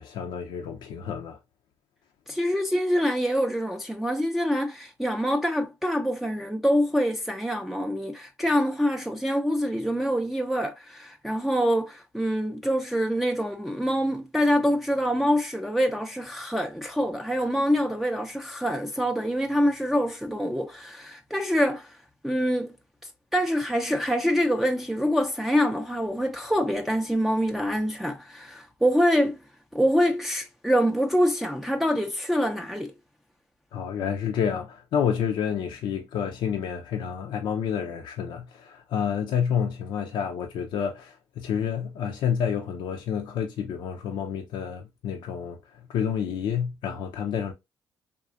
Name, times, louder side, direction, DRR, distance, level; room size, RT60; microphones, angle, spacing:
voice 1, 0.0-1.4 33.7-47.5, left 8 dB, 65° left, 0.5 m, -29 dB
voice 2, 2.3-22.0 22.2-22.7 23.3-29.4 29.7-32.9, equal, ahead, 0.5 m, -25 dB
3.6 x 2.4 x 2.4 m
hypercardioid pair, 55°, 9 cm